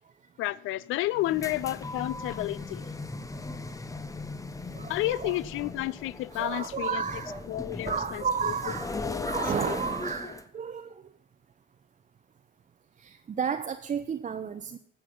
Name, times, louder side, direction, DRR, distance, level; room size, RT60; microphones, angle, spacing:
voice 1, 0.4-2.9 4.9-7.0 7.5-8.5 9.0-9.8, left 16 dB, 90° left, 0.4 m, -31 dB
sound 1, 1.1-10.4, left 2 dB, 15° left, 0.9 m, -38 dB
voice 2, 4.7-5.4 6.3-7.5 7.8-11.0 13.0-14.8, right 6 dB, 40° right, 0.6 m, -32 dB
13.5 x 7.9 x 5.4 m
cardioid pair, 90°, 20 cm